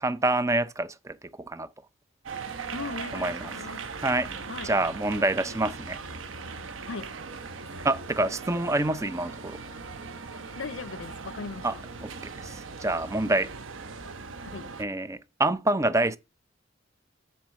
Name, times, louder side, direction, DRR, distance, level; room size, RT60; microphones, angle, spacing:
voice 1, 0.0-1.7 3.1-3.5 4.0-4.3 4.6-6.0 7.8-9.6 11.6-11.8 12.0-13.5 14.8-16.2, right 2 dB, 15° right, 0.5 m, -27 dB
sound 1, 2.3-14.8, right 4 dB, 90° right, 0.9 m, -39 dB
voice 2, 2.7-3.8 4.5-4.7 6.9-7.1 10.6-11.7 14.4-14.7, left 5 dB, 70° left, 0.5 m, -38 dB
7.4 x 4.4 x 6.3 m
head